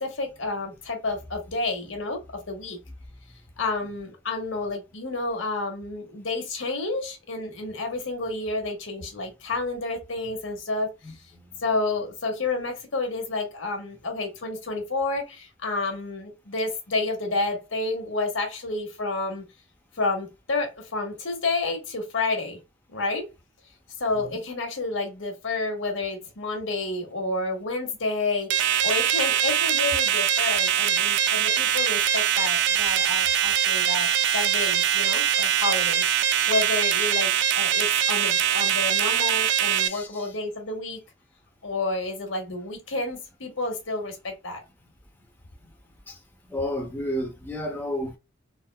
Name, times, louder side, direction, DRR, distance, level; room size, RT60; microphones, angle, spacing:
voice 1, 0.0-2.8 3.6-10.9 11.6-19.4 20.0-22.6 22.9-23.3 24.0-36.0 36.5-41.0 41.6-44.6, left 3 dB, 85° left, 1.2 m, -30 dB
voice 2, 11.0-11.4 24.1-24.3 39.8-40.3 46.1-46.2 46.5-48.2, left 1 dB, 10° left, 0.6 m, -32 dB
sound 1, 28.5-39.9, right 9 dB, 60° right, 0.3 m, -23 dB
3.5 x 2.5 x 2.2 m
head